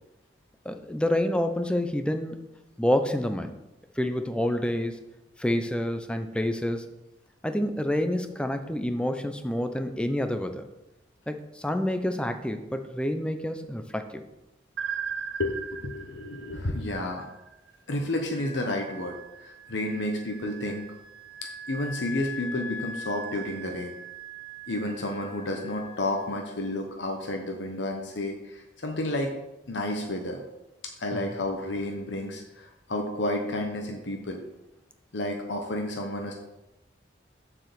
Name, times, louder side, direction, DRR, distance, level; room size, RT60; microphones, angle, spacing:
voice 1, 0.6-2.4 2.8-3.6 4.0-5.0 5.4-6.9 7.4-10.6 11.3-14.2 31.1-31.3, left 1 dB, 5° left, 7 dB, 0.6 m, -28 dB
sound 1, 14.8-17.7, right 7 dB, 75° right, 0.5 m, -36 dB
voice 2, 15.4-17.3 17.9-20.8 21.4-23.9 24.7-29.3 29.7-30.4 31.0-34.4 35.1-36.3, left 1 dB, 75° left, 2 dB, 1.0 m, -31 dB
Wind instrument woodwind instrument, 18.3-26.6, equal, 50° left, 2.8 m, -42 dB
7.5 x 4.8 x 6.8 m, 0.94 s
head